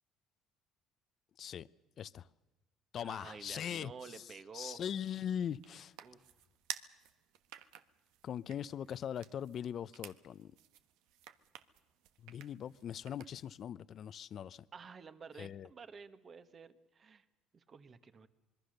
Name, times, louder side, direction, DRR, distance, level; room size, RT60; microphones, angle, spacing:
voice 1, 1.4-1.7 2.0-2.3 2.9-3.9 4.5-5.9 8.2-10.5 12.2-14.6 15.4-15.7, left 9 dB, 50° left, 0.7 m, -40 dB
voice 2, 3.0-4.8 6.0-6.2 14.7-17.2 17.5-18.3, right 5 dB, 35° right, 1.6 m, -51 dB
sound 1, 4.9-13.6, right 12 dB, 80° right, 1.2 m, -52 dB
25.5 x 22.0 x 6.7 m
cardioid pair, 100°, 0 cm